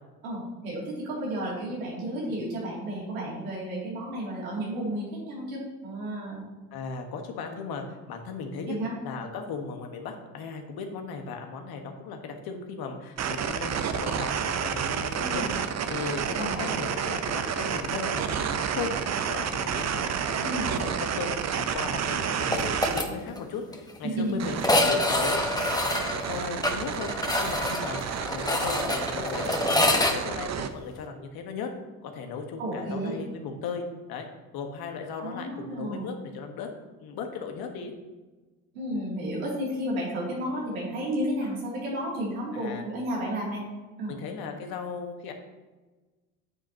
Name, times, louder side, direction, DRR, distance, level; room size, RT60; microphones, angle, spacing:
voice 1, 0.2-6.4 8.7-8.9 15.2-15.6 16.3-16.7 20.4-20.7 24.0-24.4 32.6-33.1 35.2-36.1 38.7-43.6 44.0-44.1, right 1 dB, 90° right, -5 dB, 2.9 m, -32 dB
voice 2, 6.7-8.8 9.0-18.9 19.3-21.3 21.5-25.5 26.2-27.1 27.4-31.7 32.0-33.8 34.1-34.3 34.5-36.7 37.0-37.9 42.5-42.8 44.1-45.3, left 5 dB, 60° left, 4 dB, 1.5 m, -37 dB
sound 1, 13.2-23.0 24.4-30.7, right 7 dB, 40° right, 0.8 m, -30 dB
sound 2, 22.5-23.1 23.4-23.5 23.7-23.8 24.6-30.1, left 1 dB, 10° left, 1.3 m, -26 dB
9.7 x 7.6 x 2.9 m, 1.2 s
hypercardioid pair, 60°, 41 cm